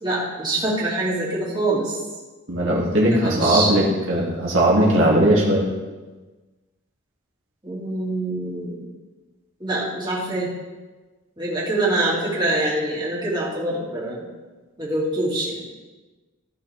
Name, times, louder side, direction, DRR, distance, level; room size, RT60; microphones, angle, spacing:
voice 1, 0.0-2.0 3.1-3.9 7.6-8.7 9.6-10.5 11.4-14.2 14.8-15.6, right 2 dB, 20° right, -7 dB, 2.6 m, -25 dB
voice 2, 2.5-5.7, right 1 dB, 70° right, -4 dB, 2.2 m, -18 dB
15.0 x 6.4 x 3.6 m, 1.3 s
head